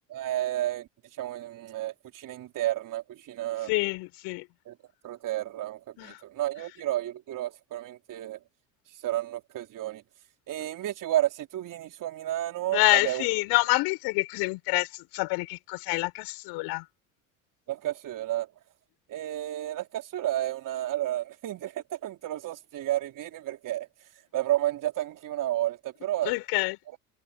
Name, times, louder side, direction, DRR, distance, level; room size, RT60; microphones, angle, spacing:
voice 1, 0.1-0.9 1.2-3.7 4.7-4.8 5.0-8.4 9.0-10.0 10.5-13.2 17.7-18.5 19.1-23.9 24.3-26.3, right 13 dB, 50° right, 4.5 m, -31 dB
voice 2, 3.7-4.5 6.0-6.2 12.7-16.8 26.2-27.0, left 26 dB, 65° left, 6.5 m, -27 dB
hypercardioid pair, 85°, 41 cm